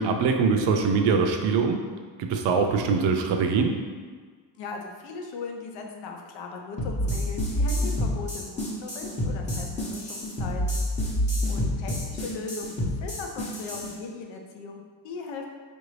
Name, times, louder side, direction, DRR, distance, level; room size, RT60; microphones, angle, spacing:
voice 1, 0.0-1.8 2.2-3.8, right 5 dB, 70° right, 4 dB, 0.6 m, -23 dB
voice 2, 4.6-10.8 11.5-15.5, left 4 dB, 75° left, 2 dB, 0.7 m, -38 dB
sound 1, 6.8-13.9, left 1 dB, 15° left, 0.8 m, -28 dB
5.0 x 2.6 x 3.2 m, 1.5 s
cardioid pair, 160°, 45 cm